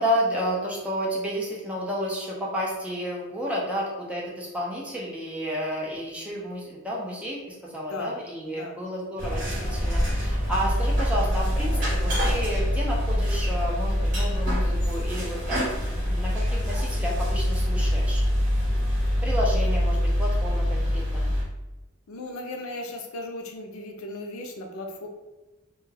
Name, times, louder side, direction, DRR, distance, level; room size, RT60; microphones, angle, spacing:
voice 1, 0.0-18.2 19.2-21.3, equal, 5° right, -4 dB, 0.4 m, -31 dB
voice 2, 7.7-8.1 8.4-8.8 19.1-19.2 22.1-25.1, left 1 dB, 85° left, 3 dB, 0.4 m, -36 dB
sound 1, 9.2-21.4, equal, 40° right, 1.0 m, -25 dB
2.2 x 2.2 x 3.2 m, 1.1 s
head